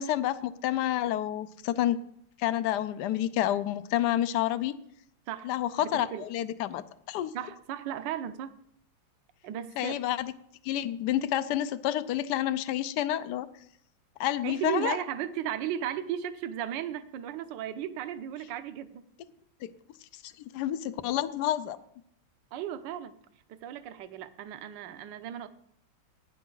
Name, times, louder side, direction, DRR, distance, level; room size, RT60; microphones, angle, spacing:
voice 1, 0.0-2.0 2.4-4.7 5.4-6.8 7.1-7.3 9.8-10.3 10.6-13.5 14.2-15.0 19.6-19.7 20.1-21.8, left 12 dB, 70° left, 14 dB, 1.0 m, -29 dB
voice 2, 5.8-6.3 7.3-8.5 9.4-10.0 14.4-19.1 22.5-23.2 23.5-25.5, right 10 dB, 65° right, 11 dB, 1.3 m, -35 dB
17.5 x 9.8 x 3.9 m, 0.72 s
omnidirectional pair, 2.3 m